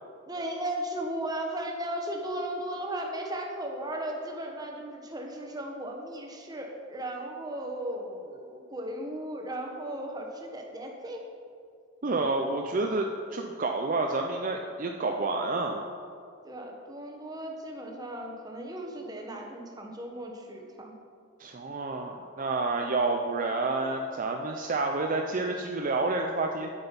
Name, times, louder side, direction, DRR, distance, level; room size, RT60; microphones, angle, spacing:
voice 1, 0.3-11.2 16.4-20.9, right 1 dB, 20° right, 1 dB, 1.1 m, -36 dB
voice 2, 12.0-15.8 21.4-26.7, right 3 dB, 45° right, 2 dB, 0.5 m, -29 dB
8.9 x 8.0 x 5.3 m, 2.3 s
head